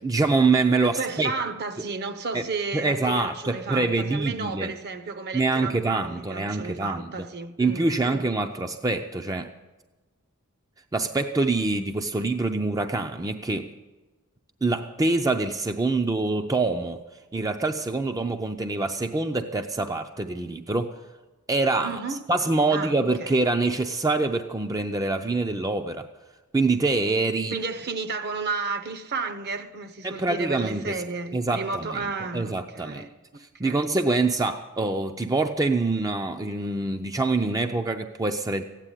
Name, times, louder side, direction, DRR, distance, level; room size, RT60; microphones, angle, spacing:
voice 1, 0.0-1.3 2.3-2.4 2.7-4.7 5.3-7.1 7.6-9.5 10.9-13.7 14.6-17.0 17.3-21.0 21.5-26.1 26.5-27.6 30.0-31.0 31.3-32.0 32.3-33.1 33.4-38.6, right 3 dB, 15° right, 0.5 m, -25 dB
voice 2, 0.8-8.3 21.8-22.2 22.7-22.9 23.2-23.4 27.5-33.1 33.5-33.8, right 4 dB, 45° right, 0.8 m, -33 dB
15.5 x 9.0 x 9.9 m
head